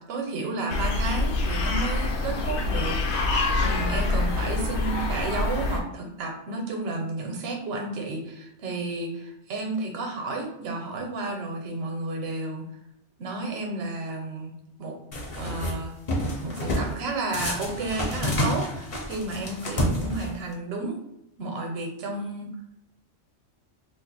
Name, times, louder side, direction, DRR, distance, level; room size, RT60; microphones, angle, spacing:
voice 1, 0.0-12.7 13.2-14.5 14.8-15.0 15.4-15.9 16.4-21.0 21.4-22.5, right 2 dB, 65° right, 2 dB, 0.9 m, -32 dB
sound 1, 0.7-5.8, left 3 dB, 75° left, 0.8 m, -26 dB
sound 2, 15.1-15.7 16.1-16.9 17.3-20.5, left 1 dB, 40° left, 0.5 m, -28 dB
2.5 x 2.4 x 4.1 m, 0.83 s
omnidirectional pair, 1.2 m